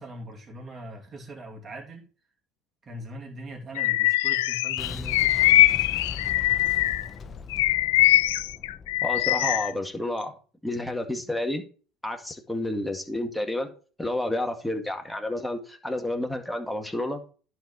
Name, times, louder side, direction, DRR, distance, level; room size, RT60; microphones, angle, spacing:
voice 1, 0.0-2.1 2.8-5.4, right 1 dB, 30° right, 0 dB, 2.8 m, -41 dB
Bird vocalization bird call bird song, 3.8-7.1 7.5-9.7, left 16 dB, 80° left, 0.3 m, -22 dB
Boom, 4.8-9.7, left 5 dB, 35° left, 1.0 m, -40 dB
voice 2, 9.0-10.3 10.6-11.6 12.0-13.7 14.0-17.2, left 1 dB, 5° left, 4 dB, 1.9 m, -30 dB
10.5 x 4.5 x 4.8 m, 0.37 s
hypercardioid pair, 80°, 0 cm